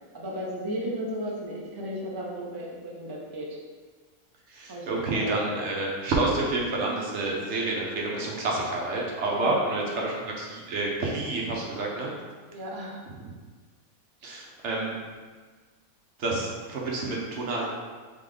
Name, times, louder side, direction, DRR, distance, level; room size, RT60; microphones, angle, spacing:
voice 1, 0.1-3.6 4.7-5.4 9.3-9.6 12.5-13.0, equal, 35° right, -4 dB, 0.3 m, -34 dB
voice 2, 4.5-12.1 13.2-13.3 14.2-14.9 16.2-17.7, right 2 dB, 60° right, -2 dB, 0.9 m, -29 dB
3.7 x 3.4 x 3.8 m, 1.5 s
omnidirectional pair, 1.5 m